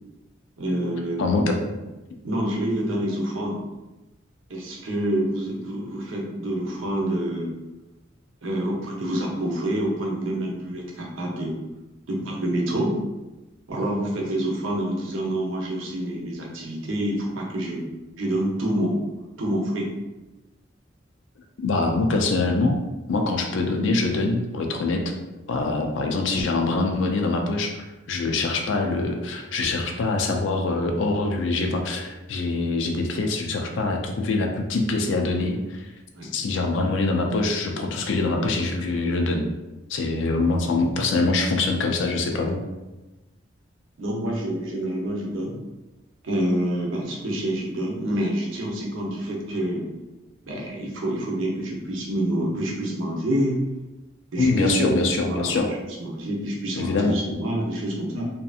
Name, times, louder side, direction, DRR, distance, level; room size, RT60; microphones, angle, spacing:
voice 1, 0.6-1.4 2.2-3.6 4.5-7.5 8.4-11.6 12.1-13.0 13.7-17.8 18.2-19.0 19.4-19.9 36.2-36.3 44.0-45.5 46.2-49.8 50.4-53.6 54.3-58.2, right 1 dB, 85° right, -1 dB, 0.7 m, -27 dB
voice 2, 1.2-1.6 21.6-22.8 23.1-25.1 25.5-27.8 28.1-35.9 36.2-39.5 39.9-42.6 54.4-55.7 56.8-57.2, left 3 dB, 70° left, 3 dB, 0.4 m, -24 dB
2.7 x 2.5 x 2.3 m, 1.1 s
head